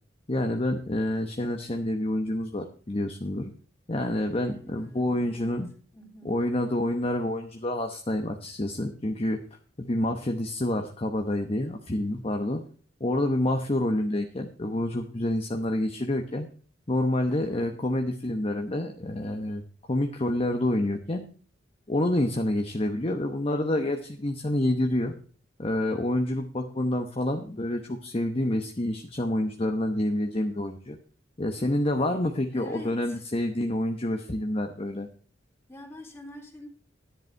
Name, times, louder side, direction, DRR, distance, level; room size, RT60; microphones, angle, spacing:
voice 1, 0.3-3.5 3.9-5.7 6.2-9.4 9.8-12.6 13.0-16.5 16.9-19.6 19.9-21.2 21.9-25.1 25.6-31.0 31.4-35.1, left 1 dB, 30° left, 1.0 m, -28 dB
voice 2, 4.2-5.6 5.9-6.4 17.3-17.8 31.6-31.7 32.5-33.2 35.7-36.7, left 1 dB, 15° left, 3.2 m, -46 dB
10.5 x 10.5 x 4.5 m
head